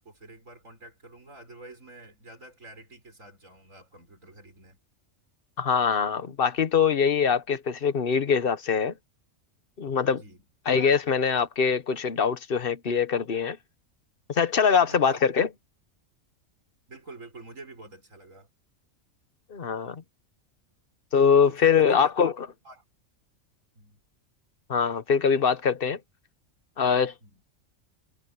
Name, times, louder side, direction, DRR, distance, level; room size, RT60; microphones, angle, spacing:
voice 1, 0.0-4.8 10.2-10.4 14.7-15.2 16.9-18.5 21.4-22.1 22.6-22.8 23.8-24.0 27.2-27.4, right 2 dB, 80° right, 6.1 m, -47 dB
voice 2, 5.6-8.9 9.8-10.2 10.7-13.6 14.3-15.5 19.5-20.0 21.1-22.3 24.7-26.0 26.8-27.1, left 6 dB, 45° left, 1.2 m, -23 dB
omnidirectional pair, 1.3 m